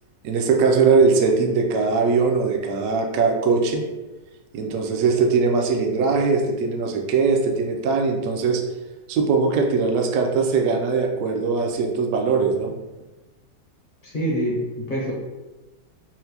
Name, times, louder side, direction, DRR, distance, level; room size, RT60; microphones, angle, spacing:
voice 1, 0.2-3.8 4.5-8.6 9.1-12.7, right 4 dB, 75° right, 3 dB, 0.7 m, -20 dB
voice 2, 14.0-15.1, equal, 45° left, -4 dB, 0.6 m, -25 dB
4.4 x 2.0 x 2.8 m, 1.1 s
omnidirectional pair, 1.9 m